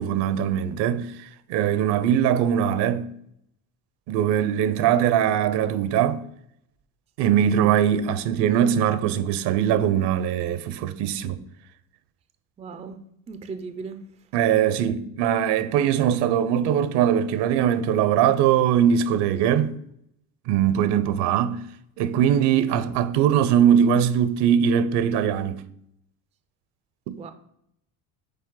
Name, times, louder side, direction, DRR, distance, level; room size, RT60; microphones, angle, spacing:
voice 1, 0.0-3.1 4.1-6.2 7.2-11.4 14.3-19.8 20.5-21.6 22.0-25.6 27.1-27.2, right 9 dB, 65° right, 0.7 m, -21 dB
voice 2, 12.6-13.0 13.3-14.0 27.2-27.3, right 4 dB, 15° right, 0.4 m, -36 dB
6.7 x 4.3 x 3.8 m
supercardioid pair, 100°, 45 cm